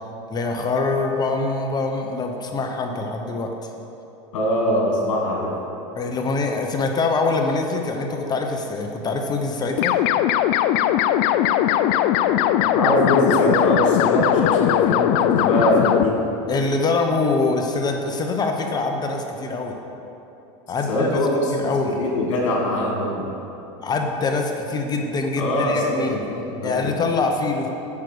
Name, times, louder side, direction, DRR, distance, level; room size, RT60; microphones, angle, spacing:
voice 1, 0.3-3.5 5.9-10.0 16.5-19.7 20.7-21.2 21.5-22.0 23.8-26.2 26.6-27.7, left 3 dB, 25° left, 3 dB, 0.9 m, -24 dB
voice 2, 4.3-5.5 12.7-16.2 20.9-21.7 22.0-23.2 25.4-26.9, left 1 dB, 85° left, -2 dB, 2.0 m, -22 dB
sound 1, 9.8-16.1, left 12 dB, 55° left, 0.4 m, -19 dB
8.3 x 6.3 x 6.8 m, 2.9 s
supercardioid pair, 125°, 16 cm